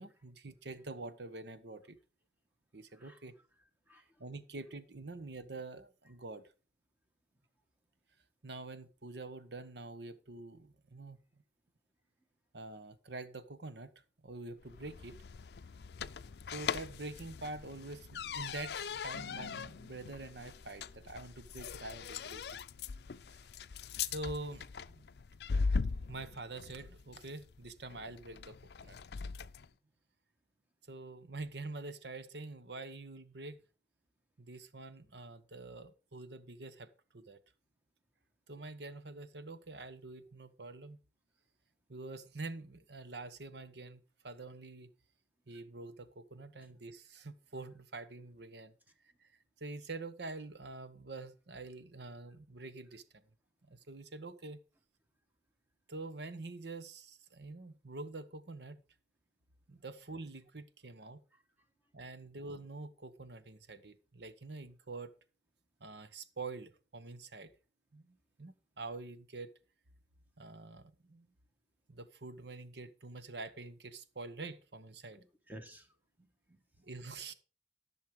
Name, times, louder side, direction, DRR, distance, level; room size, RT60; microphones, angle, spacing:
voice 1, 0.0-2.0 2.7-3.4 4.2-6.5 8.4-11.2 12.5-13.9 14.2-15.2 16.5-22.4 23.3-23.4 24.1-25.0 26.1-29.0 30.9-33.6 34.4-36.9 37.1-37.4 38.5-41.0 41.9-44.9 45.5-48.7 49.2-49.3 49.6-53.0 53.7-54.6 55.9-58.8 59.7-61.2 61.9-65.1 65.8-67.5 67.9-69.5 70.4-71.3 71.9-75.2 76.8-77.3, right 3 dB, 75° right, 1.1 m, -46 dB
voice 2, 2.9-3.3 3.9-4.2 25.7-25.8 61.3-61.7 75.2-76.9, right 1 dB, 10° right, 1.2 m, -56 dB
sound 1, 14.6-29.7, left 5 dB, 70° left, 0.5 m, -40 dB
14.5 x 6.4 x 4.8 m
head